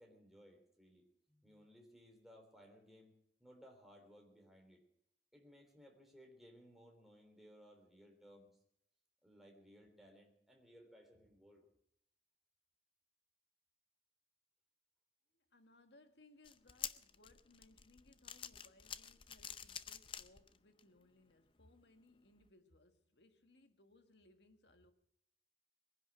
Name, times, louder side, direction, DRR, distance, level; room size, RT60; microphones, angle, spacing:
voice 1, 0.0-4.8 5.3-8.5 9.2-11.7, equal, ahead, 3.4 m, -62 dB
voice 2, 15.3-24.9, left 2 dB, 80° left, 1.7 m, -67 dB
sound 1, 16.4-20.8 21.3-21.4 22.4-22.5, left 8 dB, 30° left, 0.6 m, -48 dB
22.0 x 10.5 x 6.1 m
head